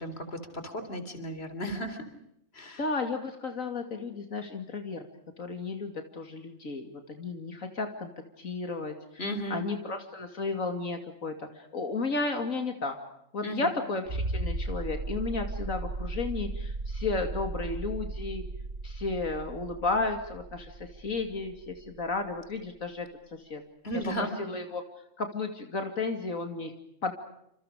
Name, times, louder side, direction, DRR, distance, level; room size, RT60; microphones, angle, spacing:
voice 1, 0.0-2.0 2.5-2.8 9.2-9.6 13.4-13.7 23.8-24.4, equal, 50° left, 9 dB, 3.8 m, -35 dB
voice 2, 2.8-5.1 5.4-8.1 8.4-13.0 13.3-18.4 18.8-23.6 24.2-24.8 25.2-26.7 27.0-27.1, left 3 dB, 85° left, 5 dB, 3.0 m, -33 dB
sound 1, 14.1-22.5 24.0-24.1, right 2 dB, 55° right, 2.2 m, -36 dB
29.0 x 27.5 x 5.0 m, 0.77 s
omnidirectional pair, 1.4 m